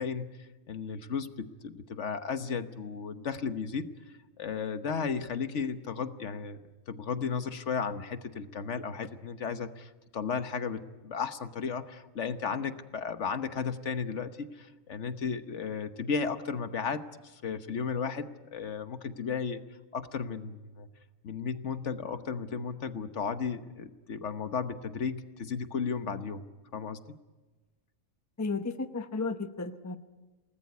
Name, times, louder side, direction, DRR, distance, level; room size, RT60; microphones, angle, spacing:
voice 1, 0.0-3.9 4.4-6.6 6.9-19.6 19.9-20.9 21.2-26.4 26.7-27.0, left 6 dB, 65° left, 10 dB, 1.3 m, -34 dB
voice 2, 28.4-30.0, left 3 dB, 15° left, 8 dB, 0.8 m, -33 dB
28.0 x 19.0 x 9.4 m, 1.2 s
omnidirectional pair, 1.4 m